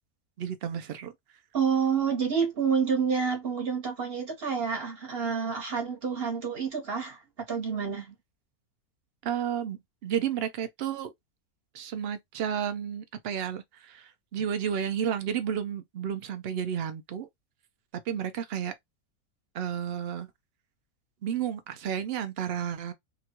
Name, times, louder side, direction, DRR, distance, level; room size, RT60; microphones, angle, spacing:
voice 1, 0.4-1.1 9.2-11.1 11.7-17.3 18.1-18.7 19.5-20.3 21.2-22.9, right 9 dB, 65° right, 0.6 m, -32 dB
voice 2, 1.5-7.2 7.5-8.1, right 6 dB, 45° right, 1.1 m, -28 dB
2.9 x 2.3 x 2.8 m
omnidirectional pair, 1.6 m